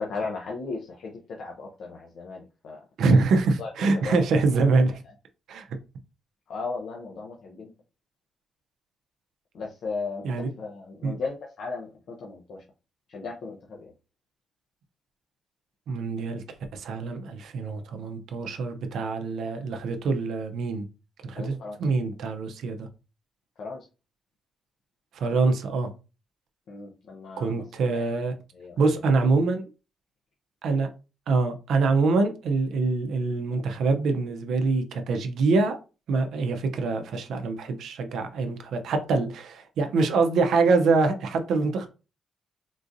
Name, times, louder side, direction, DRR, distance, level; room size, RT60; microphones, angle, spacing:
voice 1, 0.0-2.8 3.6-4.2 6.5-7.7 9.5-12.6 13.1-13.9 21.3-21.8 23.6-23.9 26.7-28.0 28.5-28.8, left 4 dB, 70° left, 0.7 m, -36 dB
voice 2, 3.0-5.0 5.5-5.7 10.2-10.5 11.0-11.1 15.9-16.4 16.7-20.9 21.2-22.9 25.1-25.9 27.4-28.3 28.8-29.6 30.6-30.9 31.3-35.8 36.1-41.9, right 3 dB, 80° right, 0.5 m, -25 dB
3.7 x 2.5 x 2.5 m
supercardioid pair, 60°, 0 cm